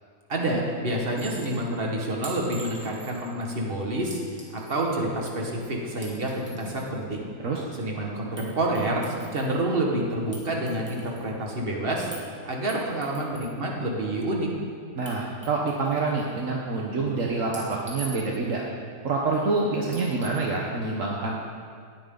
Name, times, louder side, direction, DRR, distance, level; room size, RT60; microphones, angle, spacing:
voice 1, 0.3-7.3 7.7-12.1 12.5-14.5, right 1 dB, 40° right, -1 dB, 2.0 m, -28 dB
Chink clink, 1.2-1.6 2.2-3.3 4.1-4.8 5.9-6.8 8.4-8.5 8.7-9.6 10.3-11.3 12.1-12.3 12.7-13.5 15.0-15.1 15.4-16.3 17.5-18.5 19.9-20.5, right 1 dB, 10° right, 2.3 m, -44 dB
voice 2, 14.9-18.6 19.0-21.4, right 3 dB, 65° right, -2 dB, 1.5 m, -27 dB
18.5 x 9.3 x 4.0 m, 2.1 s
omnidirectional pair, 1.5 m